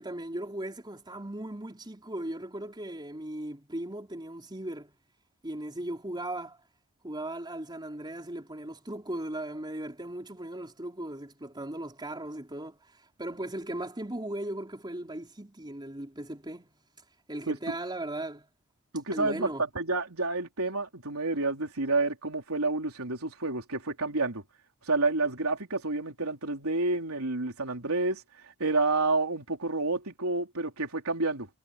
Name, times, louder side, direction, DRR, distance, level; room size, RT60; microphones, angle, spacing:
voice 1, 0.0-4.9 5.4-6.6 7.0-12.8 13.2-16.7 17.3-18.5 19.1-19.6, right 1 dB, 20° right, 4.1 m, -37 dB
voice 2, 18.9-24.4 24.9-31.5, right 3 dB, 85° right, 3.6 m, -29 dB
head